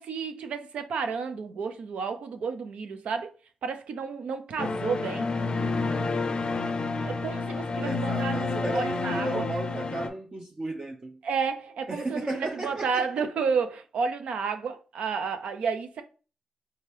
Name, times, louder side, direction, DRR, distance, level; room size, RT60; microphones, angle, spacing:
voice 1, 0.0-3.3 3.6-5.3 7.0-9.4 11.2-16.0, right 5 dB, 85° right, 0.5 m, -31 dB
sound 1, 4.6-10.1, left 3 dB, 45° left, 0.4 m, -29 dB
voice 2, 7.8-11.2 11.9-13.0, right 2 dB, 40° right, 0.6 m, -34 dB
3.5 x 2.8 x 3.2 m
cardioid pair, 60°, 2 cm